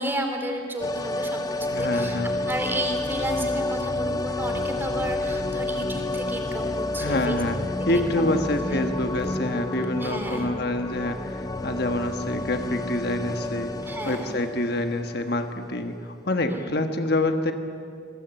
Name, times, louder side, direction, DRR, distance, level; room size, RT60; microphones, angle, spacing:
voice 1, 0.0-2.2 2.4-7.4 7.9-8.1 8.7-8.8 10.0-10.5 13.8-14.4 16.5-16.8, right 1 dB, 10° right, 4 dB, 3.2 m, -32 dB
sound 1, 0.8-15.7 16.0-16.1, left 2 dB, 20° left, 0.7 m, -30 dB
voice 2, 1.7-2.4 7.0-7.6 7.8-13.8 14.0-17.5, left 1 dB, 55° left, 6 dB, 1.4 m, -27 dB
27.0 x 21.0 x 9.0 m, 2.4 s
head